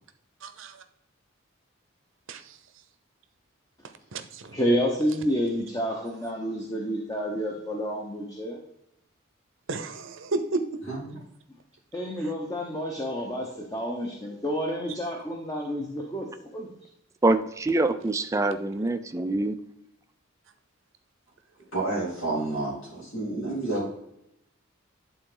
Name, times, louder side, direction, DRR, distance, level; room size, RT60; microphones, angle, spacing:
voice 1, 0.4-0.8 2.3-2.6 4.1-4.6 9.7-10.6, right 2 dB, 70° right, 9 dB, 0.7 m, -32 dB
voice 2, 4.5-8.6 11.9-16.3 16.5-16.7, equal, 15° left, 0 dB, 0.8 m, -29 dB
voice 3, 10.9-11.2 21.7-23.9, right 2 dB, 70° left, -8 dB, 3.2 m, -30 dB
voice 4, 17.2-19.6, right 2 dB, 15° right, 9 dB, 0.4 m, -25 dB
11.0 x 3.9 x 3.9 m, 0.79 s
head